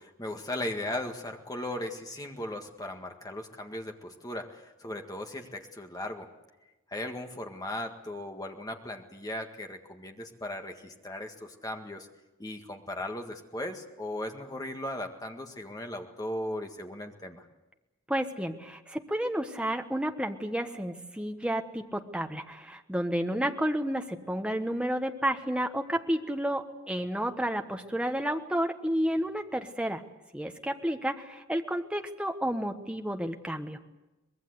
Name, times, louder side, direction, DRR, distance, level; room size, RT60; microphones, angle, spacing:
voice 1, 0.0-6.3 6.9-12.1 12.4-17.5, left 1 dB, 15° left, 4 dB, 1.8 m, -37 dB
voice 2, 18.1-30.0 30.3-33.8, equal, 5° right, 5 dB, 1.2 m, -31 dB
24.0 x 20.5 x 8.0 m, 1.0 s
head